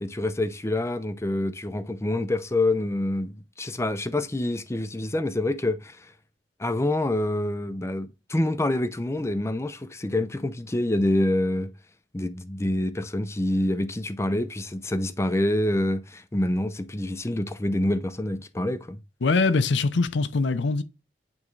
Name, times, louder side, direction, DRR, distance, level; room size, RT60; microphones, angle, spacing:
voice 1, 0.0-6.1 6.6-11.7 12.1-19.0, left 1 dB, 15° left, 0.5 m, -26 dB
voice 2, 19.2-20.8, left 3 dB, 85° left, 0.6 m, -22 dB
8.4 x 3.5 x 3.2 m
head